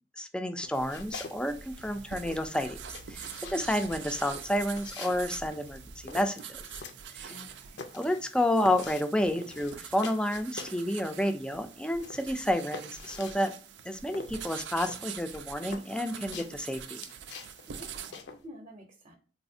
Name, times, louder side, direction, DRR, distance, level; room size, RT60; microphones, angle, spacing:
voice 1, 0.2-2.8 3.1-3.2 3.5-6.6 7.2-7.3 7.9-13.5 13.9-16.3 16.7-17.0, left 1 dB, 5° left, 8 dB, 0.3 m, -30 dB
sound 1, 0.6-1.4 1.7-10.9 11.2-18.4, left 4 dB, 75° left, 0.5 m, -45 dB
sound 2, 0.7-18.1, right 7 dB, 90° right, 0.4 m, -45 dB
voice 2, 7.3-7.8 16.1-16.4 17.7-19.1, left 1 dB, 35° right, 2 dB, 0.7 m, -49 dB
4.1 x 2.7 x 2.6 m, 0.38 s
head